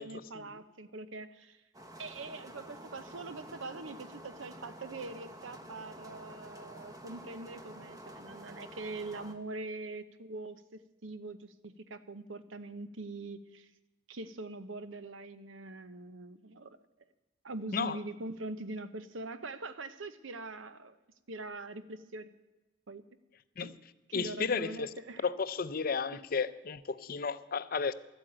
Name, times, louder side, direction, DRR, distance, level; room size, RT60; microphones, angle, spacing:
voice 1, 0.0-1.6 2.0-13.7 14.1-16.8 17.4-21.0 21.3-22.3 22.9-23.0 23.6-23.7 24.1-25.3 26.1-26.2, right 2 dB, 85° right, 0.9 m, -43 dB
sound 1, 1.7-9.3, equal, 20° right, 0.9 m, -49 dB
voice 2, 24.1-24.9 25.2-27.9, left 5 dB, 50° left, 0.5 m, -33 dB
12.5 x 8.9 x 8.8 m
head